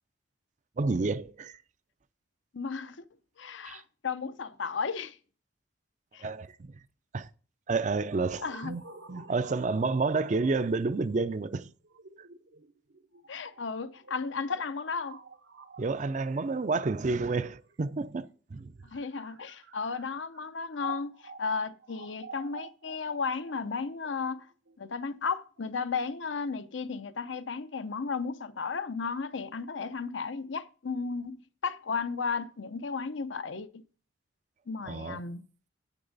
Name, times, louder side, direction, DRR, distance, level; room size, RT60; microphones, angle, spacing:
voice 1, 0.8-1.6 3.7-3.8 6.2-6.8 7.1-7.3 7.7-8.8 9.1-11.7 15.8-18.7 34.9-35.2, right 3 dB, 40° right, 0.4 m, -30 dB
voice 2, 2.5-3.0 3.4-5.2 6.1-6.3 8.4-8.7 13.3-15.2 18.8-21.1 21.4-24.5 24.8-33.8 34.7-35.4, left 5 dB, 75° left, 0.7 m, -34 dB
sound 1, 8.1-17.9 18.7-25.6, right 5 dB, 70° right, 0.8 m, -50 dB
9.7 x 8.0 x 4.0 m
head